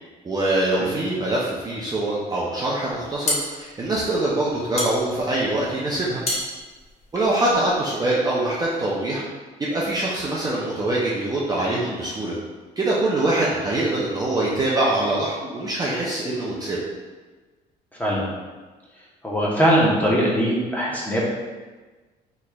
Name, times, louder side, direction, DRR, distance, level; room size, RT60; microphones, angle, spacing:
voice 1, 0.2-6.2 7.1-9.2 9.6-12.4 12.8-16.8, right 2 dB, 20° right, -6 dB, 0.6 m, -24 dB
sound 1, 2.9-7.8, left 1 dB, 40° left, 0.8 m, -30 dB
voice 2, 17.9-18.2 19.2-21.2, equal, 10° left, -5 dB, 1.0 m, -20 dB
4.1 x 3.2 x 2.3 m, 1.3 s
cardioid pair, 110°, 17 cm